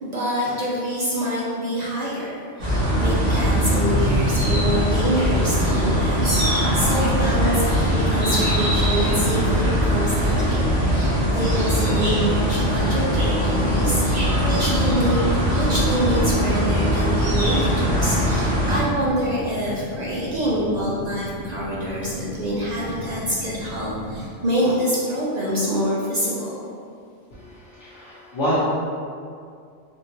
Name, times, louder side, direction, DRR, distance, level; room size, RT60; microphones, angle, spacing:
voice 1, 0.0-15.2 15.5-26.7, equal, 55° right, -6 dB, 0.4 m, -26 dB
sound 1, 2.6-18.8, equal, 75° right, 1.4 m, -21 dB
sound 2, 6.8-24.3, equal, 40° left, 0.4 m, -35 dB
voice 2, 27.3-28.6, equal, 75° left, -12 dB, 1.3 m, -27 dB
3.6 x 2.4 x 2.9 m, 2.3 s
omnidirectional pair, 1.2 m